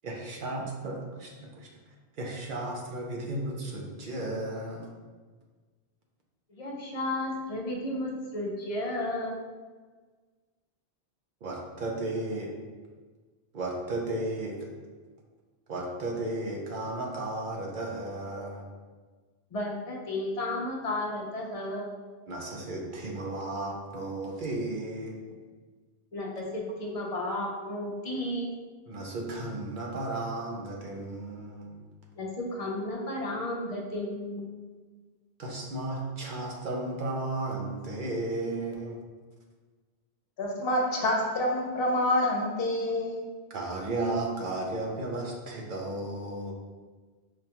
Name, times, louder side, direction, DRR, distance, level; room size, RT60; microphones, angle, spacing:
voice 1, 0.0-1.7 2.2-4.9 11.4-12.5 13.5-14.7 15.7-18.7 22.3-25.2 28.9-31.8 35.4-39.0 43.5-46.5, right 2 dB, 55° right, 0 dB, 0.7 m, -34 dB
voice 2, 6.5-9.4 19.5-21.9 26.1-28.5 32.2-34.5, left 1 dB, 45° left, -2 dB, 0.6 m, -33 dB
voice 3, 40.4-43.2, left 1 dB, 65° left, 0 dB, 0.9 m, -27 dB
4.9 x 2.2 x 2.8 m, 1.4 s
omnidirectional pair, 1.1 m